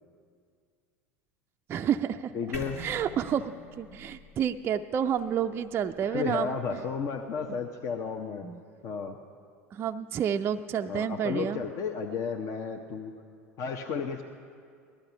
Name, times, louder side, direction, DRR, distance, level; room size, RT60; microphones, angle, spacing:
voice 1, 1.7-2.3 2.8-6.6 8.4-8.6 9.7-11.6, right 8 dB, 30° right, 6 dB, 0.4 m, -30 dB
voice 2, 2.3-2.8 6.0-8.5 8.8-9.2 10.9-13.1 13.6-14.2, left 6 dB, 45° left, 3 dB, 0.9 m, -33 dB
sound 1, 2.5-6.5, left 1 dB, 80° left, 2.2 m, -45 dB
19.0 x 13.0 x 5.6 m, 2.2 s
figure-of-eight pair, 75°, 8 cm